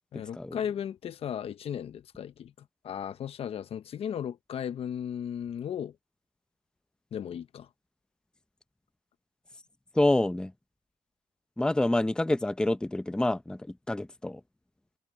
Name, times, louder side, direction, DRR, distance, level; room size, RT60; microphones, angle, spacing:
voice 1, 0.1-5.9 7.1-7.7, left 9 dB, 65° left, 1.1 m, -36 dB
voice 2, 9.9-10.5 11.6-14.4, left 1 dB, 5° left, 0.7 m, -27 dB
cardioid pair, 90°, 11 cm